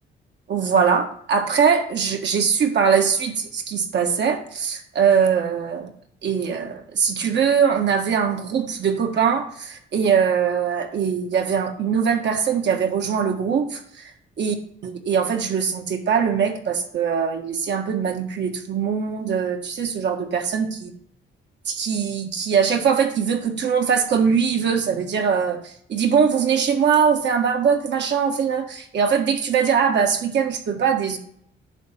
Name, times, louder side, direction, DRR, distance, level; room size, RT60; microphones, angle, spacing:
voice 1, 0.5-5.9 6.2-14.0 14.4-14.5 14.8-20.7 21.7-31.2, right 6 dB, 60° right, 4 dB, 1.7 m, -21 dB
10.5 x 4.0 x 7.3 m, 0.65 s
cardioid pair, 90°, 20 cm